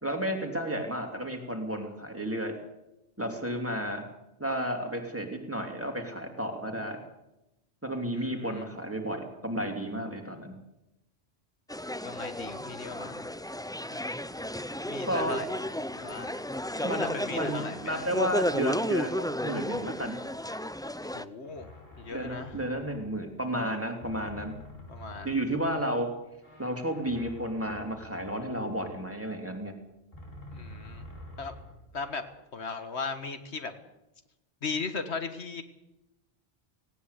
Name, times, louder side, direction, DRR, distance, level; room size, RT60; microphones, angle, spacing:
voice 1, 0.0-2.5 3.2-4.0 4.4-7.0 7.8-10.5 15.1-15.4 16.8-19.1 19.4-20.2 22.1-24.5 25.2-26.1 26.6-29.7, right 1 dB, 10° right, 3 dB, 3.0 m, -32 dB
voice 2, 8.1-8.7 12.0-13.2 14.9-15.5 15.9-16.4 16.8-18.0 21.1-22.6 24.9-25.4 30.5-31.1 31.4-31.5 31.9-32.2 32.5-33.7 34.6-35.6, left 4 dB, 85° left, 8 dB, 1.9 m, -37 dB
sound 1, 11.7-21.2, left 1 dB, 5° left, 0.4 m, -33 dB
sound 2, 21.4-23.7 24.0-25.9 26.3-29.6 30.1-32.1, left 1 dB, 65° left, 6.0 m, -48 dB
18.0 x 17.5 x 8.3 m, 0.93 s
omnidirectional pair, 1.1 m